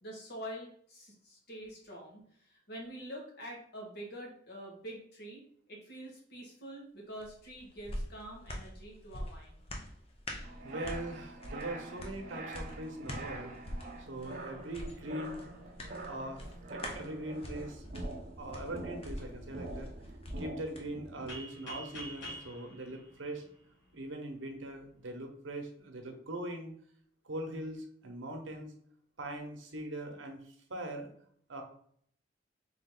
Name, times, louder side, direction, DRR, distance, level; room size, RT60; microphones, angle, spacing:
voice 1, 0.0-9.6, equal, 55° left, -2 dB, 1.4 m, -46 dB
sound 1, 7.2-20.9 21.3-21.4, equal, 30° left, 0.6 m, -44 dB
sound 2, 10.4-21.3, right 2 dB, 40° right, 0.6 m, -46 dB
voice 2, 10.6-13.5 14.1-15.4 16.1-16.4 16.7-17.8 18.4-19.9 20.4-23.4 23.9-26.7 27.2-28.7 29.2-31.1 31.5-31.6, right 1 dB, 90° right, 4 dB, 0.9 m, -41 dB
sound 3, 21.3-24.0, equal, 75° left, 1.3 m, -46 dB
3.7 x 2.9 x 3.7 m, 0.62 s
head